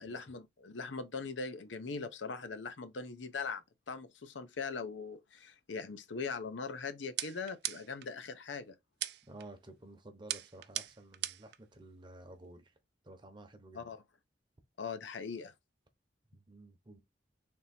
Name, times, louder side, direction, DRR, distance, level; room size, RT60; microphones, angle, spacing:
voice 1, 0.0-8.7 13.8-14.0 14.8-15.5, left 4 dB, 80° left, 0.7 m, -41 dB
sound 1, 7.2-8.1 9.0-9.5 10.3-11.6, right 14 dB, 60° right, 0.4 m, -39 dB
voice 2, 9.3-12.7 13.0-13.9 16.3-17.0, right 2 dB, 25° right, 0.8 m, -53 dB
3.6 x 2.8 x 4.2 m
head